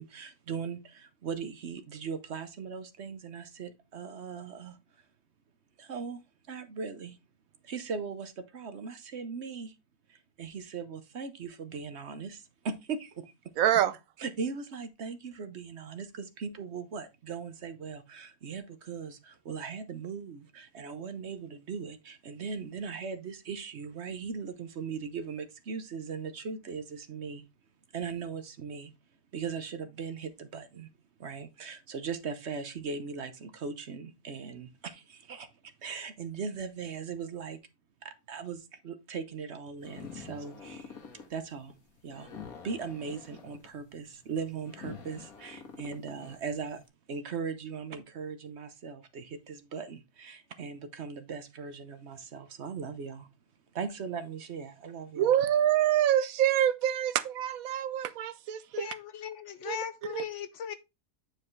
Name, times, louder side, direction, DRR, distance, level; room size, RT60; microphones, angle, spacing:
voice 1, 0.0-4.8 5.8-6.2 6.5-7.2 7.6-9.7 10.1-13.3 14.2-27.4 27.9-28.9 29.3-30.9 31.2-37.6 38.0-41.0 41.3-41.7 42.0-42.3 42.6-46.8 47.1-53.3 53.7-55.3, right 5 dB, 55° right, 1.1 m, -39 dB
voice 2, 13.6-14.0 55.2-58.9 59.7-59.8 60.1-60.2, right 11 dB, 75° right, 1.0 m, -26 dB
sound 1, 39.8-46.8, left 6 dB, 85° left, 1.8 m, -47 dB
voice 3, 58.8-60.7, left 8 dB, 65° left, 0.9 m, -38 dB
9.1 x 4.8 x 3.1 m
omnidirectional pair, 1.5 m